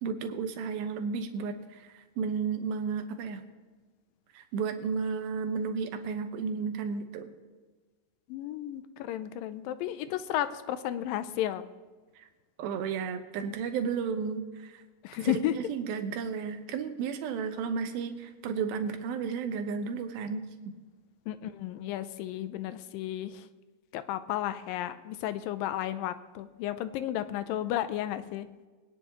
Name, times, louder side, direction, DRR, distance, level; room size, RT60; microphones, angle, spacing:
voice 1, 0.0-3.4 4.3-7.3 12.6-14.7 15.2-20.4, right 6 dB, 80° right, 7 dB, 2.9 m, -33 dB
voice 2, 8.3-11.6 15.0-15.6 21.3-23.4 23.9-28.5, left 12 dB, 80° left, 12 dB, 2.2 m, -33 dB
22.5 x 10.0 x 3.1 m, 1.3 s
omnidirectional pair, 4.3 m